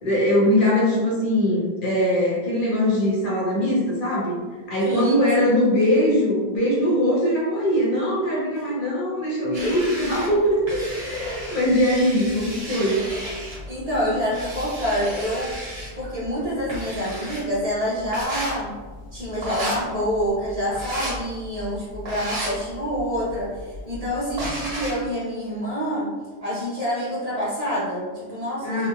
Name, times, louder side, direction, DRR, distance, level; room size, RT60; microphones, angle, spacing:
voice 1, 0.0-4.3 4.7-13.0 28.6-28.9, equal, 55° left, -5 dB, 0.7 m, -21 dB
voice 2, 4.8-5.6 9.6-9.8 13.7-15.5 15.9-18.7 19.1-26.1 26.4-28.9, equal, 40° right, -8 dB, 0.6 m, -27 dB
sound 1, 9.5-25.1, right 1 dB, 70° right, 1.0 m, -34 dB
2.8 x 2.1 x 2.3 m, 1.4 s
omnidirectional pair, 1.1 m